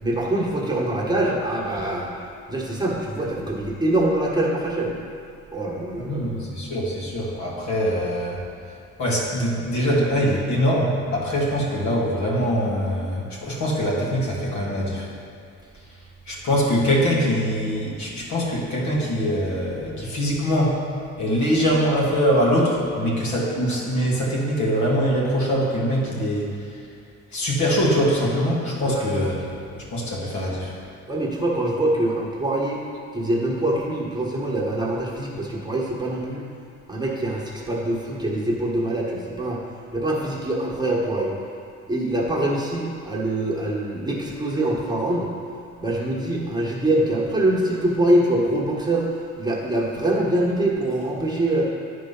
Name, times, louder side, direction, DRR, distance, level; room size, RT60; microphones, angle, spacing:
voice 1, 0.0-2.1 2.5-5.0 5.5-6.4 28.8-29.3 31.1-32.8 33.1-36.4 36.9-39.6 39.9-41.3 41.9-45.3 45.8-49.1 49.4-51.6, right 1 dB, 15° right, -4 dB, 1.5 m, -24 dB
voice 2, 5.9-8.4 9.0-15.1 16.3-20.8 21.2-26.8 27.3-30.7, equal, 70° left, -4 dB, 2.0 m, -23 dB
9.5 x 4.7 x 5.5 m, 2.3 s
cardioid pair, 90°, 30 cm